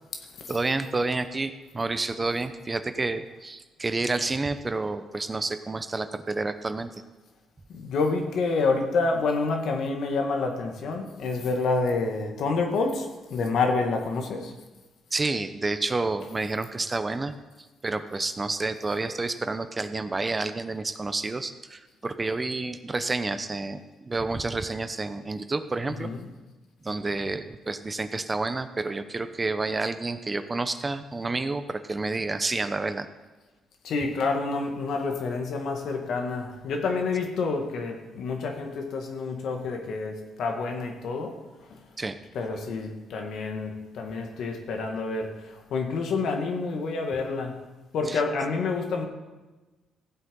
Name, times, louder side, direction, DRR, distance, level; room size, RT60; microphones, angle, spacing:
voice 1, 0.5-6.9 15.1-17.3 17.8-26.1 26.8-33.1 42.0-42.2 48.1-48.2, right 3 dB, 25° right, 10 dB, 0.8 m, -29 dB
voice 2, 7.7-14.5 25.8-26.3 33.8-41.4 41.7-41.8 42.3-47.6 47.9-49.1, left 3 dB, 70° left, 3 dB, 2.0 m, -28 dB
15.5 x 7.8 x 5.4 m, 1.2 s
cardioid pair, 90°, 0 cm